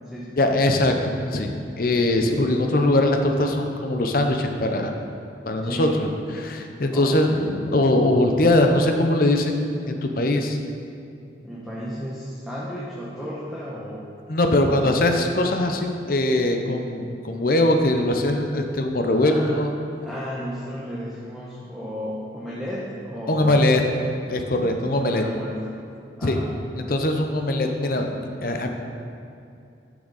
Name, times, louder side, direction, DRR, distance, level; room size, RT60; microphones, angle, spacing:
voice 1, 0.4-4.9 5.4-6.1 6.3-10.6 14.3-19.7 23.3-23.8 24.3-25.2 26.2-26.4 26.8-28.7, left 1 dB, 50° left, 4 dB, 0.6 m, -21 dB
voice 2, 5.6-6.0 6.9-7.4 11.4-14.1 14.6-14.9 19.2-19.5 20.0-23.7 24.9-25.8 26.2-26.5, equal, ahead, -7 dB, 0.9 m, -33 dB
9.9 x 6.2 x 4.0 m, 2.6 s
head